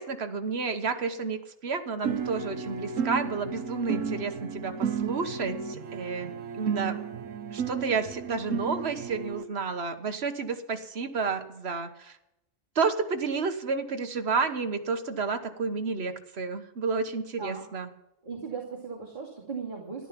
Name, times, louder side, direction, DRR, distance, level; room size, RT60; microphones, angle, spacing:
voice 1, 0.0-7.0 7.5-12.2 12.7-17.9, right 4 dB, 55° right, 7 dB, 1.5 m, -31 dB
sound 1, 2.0-9.4, right 6 dB, 80° right, 1.3 m, -33 dB
voice 2, 18.2-20.1, right 5 dB, 40° right, -4 dB, 2.6 m, -37 dB
13.5 x 12.0 x 6.0 m, 0.85 s
omnidirectional pair, 1.3 m